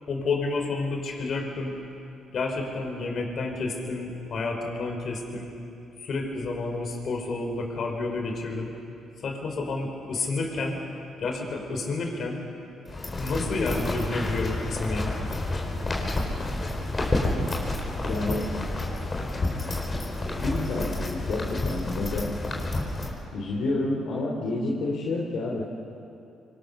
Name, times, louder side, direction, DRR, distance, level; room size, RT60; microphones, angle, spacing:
voice 1, 0.1-1.8 2.3-5.5 6.0-8.7 9.2-10.8 11.2-12.4 13.2-15.2, left 3 dB, 55° left, 2 dB, 4.8 m, -30 dB
sound 1, 12.9-23.1, left 2 dB, 30° left, 4.7 m, -29 dB
voice 2, 18.0-18.5 20.4-22.3 23.3-25.7, left 2 dB, 75° left, -3 dB, 3.3 m, -29 dB
25.5 x 25.0 x 6.7 m, 2.7 s
cardioid pair, 90°, 0 cm